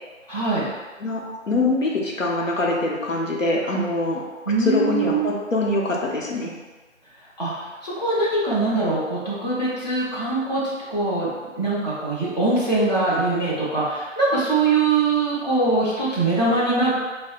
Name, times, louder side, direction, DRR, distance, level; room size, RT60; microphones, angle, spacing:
voice 1, 0.3-0.7 4.5-5.3 7.4-10.6 10.9-11.3 11.6-16.9, right 3 dB, 35° left, -9 dB, 0.7 m, -22 dB
voice 2, 1.0-4.2 4.6-6.5, left 2 dB, 80° left, -2 dB, 0.8 m, -24 dB
4.4 x 2.1 x 2.4 m, 1.3 s
figure-of-eight pair, 170°, 38 cm